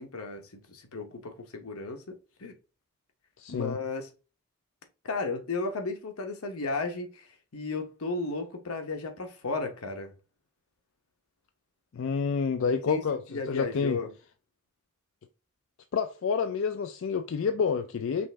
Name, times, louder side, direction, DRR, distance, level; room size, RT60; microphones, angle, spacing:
voice 1, 0.0-2.5 3.5-4.1 5.0-10.1 12.7-13.0 13.3-14.1, left 3 dB, 90° left, 0.9 m, -34 dB
voice 2, 3.4-3.8 11.9-14.0 15.9-18.3, left 6 dB, 65° left, 0.4 m, -28 dB
5.3 x 2.5 x 3.3 m
head